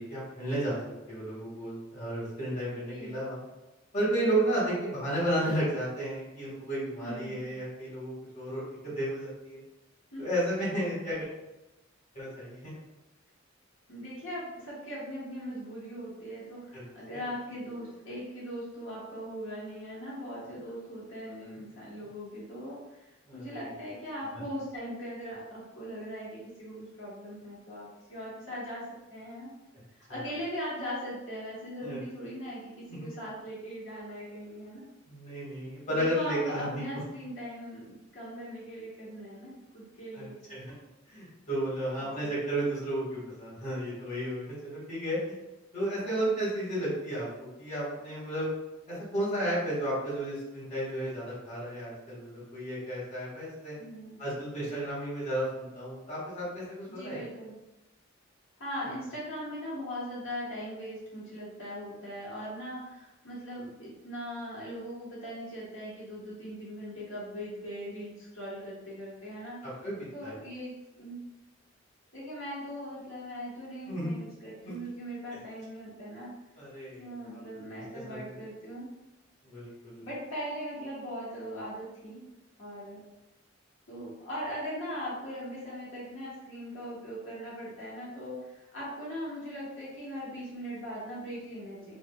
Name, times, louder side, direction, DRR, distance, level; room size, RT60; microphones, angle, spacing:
voice 1, 0.0-3.4 3.9-9.6 10.2-11.3 12.1-12.7 16.7-16.8 17.1-17.2 23.3-23.6 24.3-24.4 30.1-30.2 31.8-32.0 32.9-33.1 35.1-36.9 40.1-40.6 41.1-45.3 45.7-48.5 48.9-53.8 54.2-57.2 69.6-70.4 73.9-74.1 74.6-74.7 76.5-77.4 78.1-78.3 79.4-80.1, right 1 dB, 35° left, -8 dB, 1.5 m, -33 dB
voice 2, 7.0-7.5 10.1-10.3 13.9-29.5 30.1-34.8 35.9-40.4 42.0-42.4 45.9-46.4 53.8-54.2 56.9-57.6 58.6-69.6 70.1-71.2 72.1-76.3 77.0-78.9 80.0-82.3 82.6-83.0 83.9-92.0, equal, 75° left, -7 dB, 1.2 m, -40 dB
5.9 x 2.1 x 2.2 m, 1.0 s
head